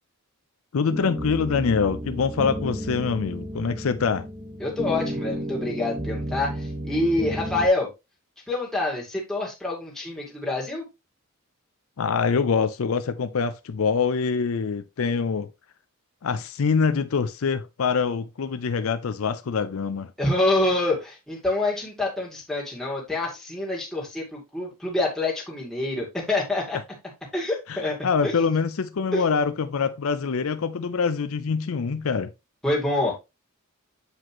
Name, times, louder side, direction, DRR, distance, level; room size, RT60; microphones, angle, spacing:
voice 1, 0.7-4.3 12.0-15.5 16.2-20.1 27.7-32.3, left 5 dB, 70° left, 0.5 m, -25 dB
sound 1, 0.9-7.7, equal, 25° right, 1.2 m, -32 dB
voice 2, 4.6-7.9 8.5-10.8 20.2-26.8 27.3-28.3 29.1-29.2 32.6-33.1, left 2 dB, ahead, 2.3 m, -26 dB
7.9 x 5.0 x 2.9 m
head